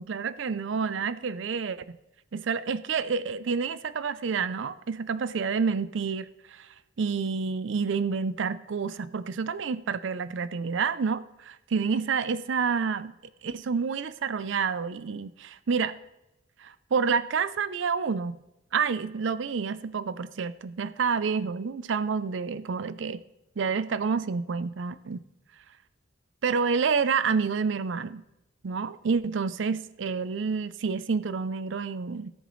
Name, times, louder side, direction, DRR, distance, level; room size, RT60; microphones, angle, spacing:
voice 1, 0.0-2.0 2.3-13.2 13.4-16.0 16.6-18.4 18.7-23.2 23.6-25.2 26.4-28.2 28.6-32.3, right 5 dB, 70° right, 16 dB, 0.5 m, -29 dB
17.0 x 7.2 x 3.1 m, 0.94 s
head